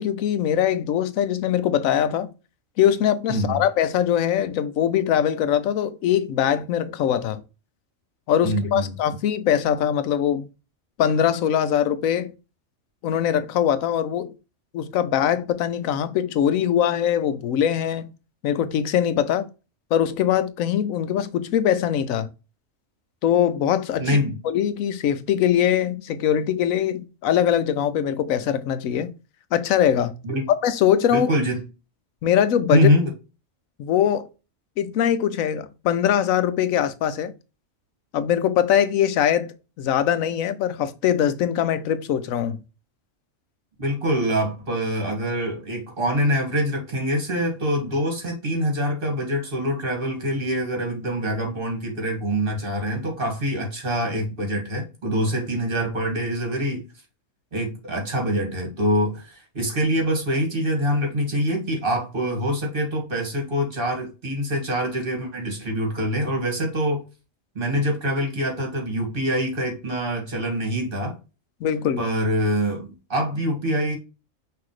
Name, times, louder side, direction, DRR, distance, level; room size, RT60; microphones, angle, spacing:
voice 1, 0.0-2.3 2.8-7.4 8.3-10.5 11.0-12.3 13.0-14.3 14.7-18.0 18.4-19.5 19.9-22.3 23.2-24.2 24.4-29.1 29.5-30.1 30.6-31.3 32.2-32.9 33.8-34.3 34.8-37.3 38.1-42.6 71.6-72.1, left 9 dB, 90° left, 1.0 m, -22 dB
voice 2, 3.3-3.6 8.4-8.9 24.0-24.4 30.2-30.5 31.1-31.6 32.7-33.1 43.8-56.8 57.5-67.0 67.6-71.2 72.0-74.0, equal, 40° right, 2.0 m, -25 dB
5.8 x 2.9 x 3.1 m
omnidirectional pair, 1.4 m